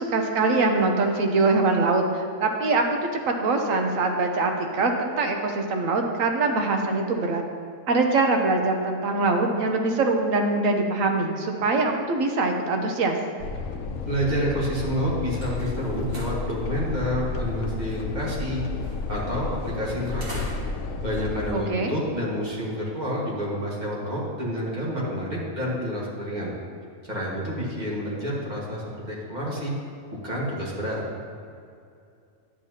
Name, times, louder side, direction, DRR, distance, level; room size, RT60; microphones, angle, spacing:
voice 1, 0.0-2.8 3.3-7.4 7.9-13.2 21.5-21.9, right 3 dB, 90° right, 3 dB, 1.2 m, -23 dB
sound 1, 13.4-21.5, left 4 dB, 85° left, 1.0 m, -32 dB
voice 2, 14.1-18.6 19.1-20.4 21.0-26.5 27.1-29.7 30.2-31.0, equal, 35° right, -5 dB, 1.8 m, -29 dB
sound 2, 15.0-22.4, left 2 dB, 70° right, 2.3 m, -42 dB
10.5 x 7.3 x 2.9 m, 2.4 s
omnidirectional pair, 1.4 m